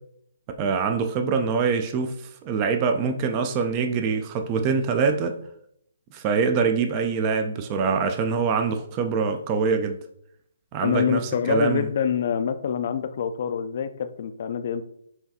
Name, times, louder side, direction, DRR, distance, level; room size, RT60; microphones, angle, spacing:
voice 1, 0.6-2.1 2.4-5.4 6.1-10.0 10.7-11.9, right 5 dB, 30° right, 6 dB, 0.4 m, -24 dB
voice 2, 10.8-14.8, left 8 dB, 55° left, 10 dB, 0.3 m, -26 dB
5.6 x 2.3 x 2.7 m, 0.70 s
hypercardioid pair, 140°, 0 cm